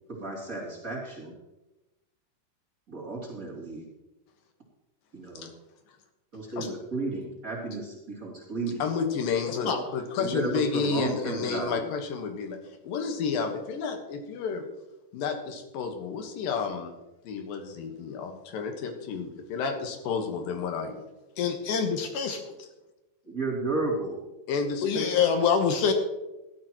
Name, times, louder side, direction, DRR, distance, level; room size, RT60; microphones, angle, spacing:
voice 1, 0.1-1.3 2.9-3.8 5.1-5.5 6.3-8.9 10.2-11.8 23.2-24.2, right 3 dB, 25° right, -4 dB, 3.0 m, -33 dB
voice 2, 8.8-12.6 12.8-14.6 15.1-16.9 17.2-21.0 22.6-22.7 24.5-25.4, left 5 dB, 90° left, 4 dB, 3.1 m, -31 dB
voice 3, 21.4-22.4 24.8-25.9, left 6 dB, 70° left, 5 dB, 2.5 m, -25 dB
17.0 x 12.5 x 3.0 m, 1.0 s
omnidirectional pair, 4.0 m